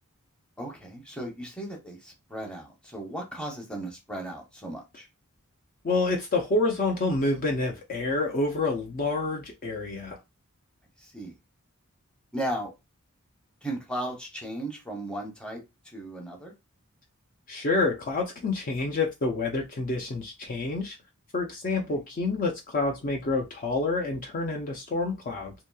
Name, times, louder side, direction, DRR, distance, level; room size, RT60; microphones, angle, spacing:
voice 1, 0.6-5.0 11.1-11.3 12.3-12.7 13.6-15.6 15.9-16.5 21.9-22.0, right 1 dB, 5° left, 0.8 m, -36 dB
voice 2, 5.8-10.2 17.5-21.0 21.3-25.5, left 3 dB, 40° left, 0.5 m, -28 dB
2.8 x 2.6 x 2.3 m
head